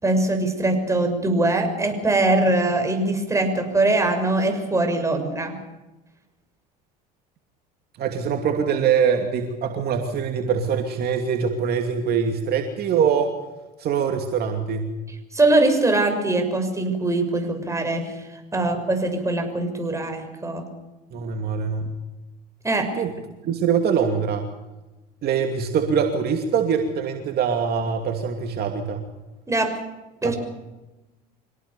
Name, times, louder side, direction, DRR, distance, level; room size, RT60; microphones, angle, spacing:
voice 1, 0.0-5.6 15.3-20.7 22.6-23.0 29.5-29.8 30.2-30.3, right 2 dB, 15° right, 5 dB, 6.4 m, -22 dB
voice 2, 8.0-13.3 13.8-14.9 18.6-18.7 21.1-21.9 22.9-23.1 23.4-24.5 25.2-29.0 30.2-30.3, right 6 dB, 50° right, 4 dB, 2.7 m, -23 dB
25.5 x 18.0 x 7.1 m, 1.1 s
supercardioid pair, 90°, 20 cm